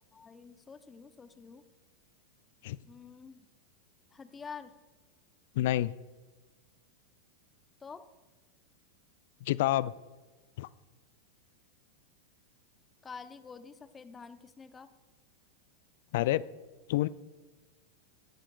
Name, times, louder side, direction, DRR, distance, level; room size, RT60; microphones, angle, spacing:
voice 1, 0.1-1.6 2.8-3.5 4.1-4.7 7.8-8.0 13.0-14.9, left 5 dB, 20° left, 12 dB, 0.7 m, -48 dB
voice 2, 5.6-5.9 9.4-9.9 10.6-10.7 16.1-16.4 16.9-17.1, left 15 dB, 60° left, 19 dB, 0.3 m, -28 dB
17.5 x 10.5 x 2.3 m, 1.3 s
figure-of-eight pair, 95°, 0 cm